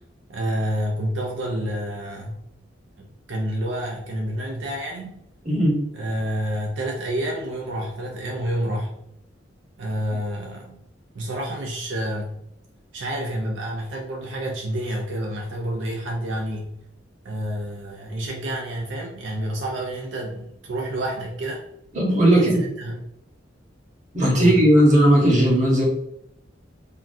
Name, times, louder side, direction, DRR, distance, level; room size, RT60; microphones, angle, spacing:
voice 1, 0.3-2.5 3.0-5.2 5.9-9.0 9.8-10.8 11.1-12.4 12.9-16.7 17.2-21.6 22.3-23.0 24.4-24.6, right 1 dB, 80° right, -1 dB, 0.5 m, -29 dB
voice 2, 5.4-5.8 21.9-22.6 24.1-25.8, right 1 dB, 40° right, -2 dB, 1.0 m, -17 dB
3.6 x 2.3 x 2.6 m, 0.77 s
head